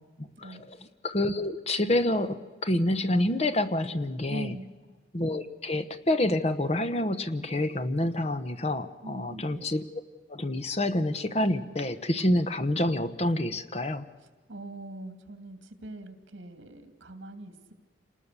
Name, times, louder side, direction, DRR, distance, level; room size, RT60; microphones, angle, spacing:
voice 1, 0.2-0.8 1.0-4.5 5.1-9.8 10.3-14.0, left 1 dB, 35° left, 11 dB, 0.9 m, -28 dB
voice 2, 4.3-4.7 9.0-9.7 14.5-17.7, right 2 dB, 70° right, 8 dB, 2.6 m, -42 dB
28.5 x 20.0 x 6.8 m, 1.4 s
head